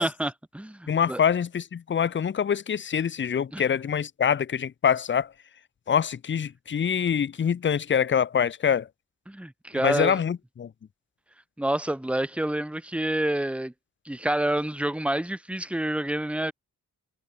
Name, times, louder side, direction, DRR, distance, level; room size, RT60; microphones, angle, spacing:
voice 1, 0.0-1.2 3.5-3.6 9.3-10.2 11.6-13.7 14.0-16.5, right 1 dB, 5° right, 0.9 m, -28 dB
voice 2, 0.9-5.3 5.9-8.9 9.7-10.7, left 7 dB, 35° left, 0.5 m, -25 dB
cardioid pair, 75°, 36 cm